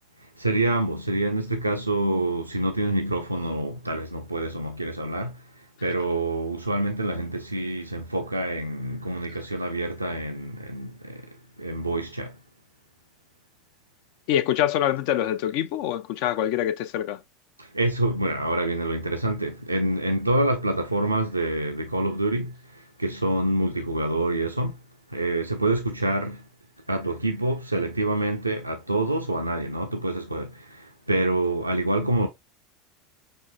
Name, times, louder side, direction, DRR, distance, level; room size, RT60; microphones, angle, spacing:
voice 1, 0.2-12.4 17.6-24.8 25.1-26.5 26.9-32.3, right 1 dB, 85° right, 0.6 m, -27 dB
voice 2, 14.3-17.2, left 11 dB, 55° left, 0.6 m, -25 dB
6.3 x 3.2 x 2.3 m
figure-of-eight pair, 75°, 0 cm